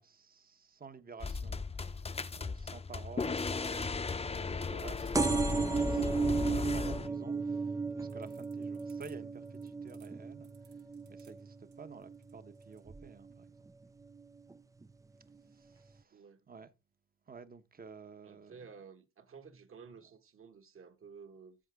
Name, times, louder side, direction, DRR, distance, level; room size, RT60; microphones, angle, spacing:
voice 1, 0.0-2.0 2.3-10.7 11.1-13.7 15.5-16.7 17.3-18.6, right 5 dB, 30° right, 1.2 m, -52 dB
sound 1, 1.2-7.1, left 4 dB, 20° left, 0.8 m, -36 dB
sound 2, 5.1-12.4 12.9-13.3 14.2-14.3 14.5-14.6 14.8-14.9, right 4 dB, 10° right, 0.4 m, -34 dB
sound 3, 7.9-12.9, right 7 dB, 75° right, 5.3 m, -66 dB
voice 2, 16.1-16.5 18.2-21.6, right 5 dB, 45° right, 1.8 m, -53 dB
14.0 x 5.0 x 3.6 m
cardioid pair, 90°, 30 cm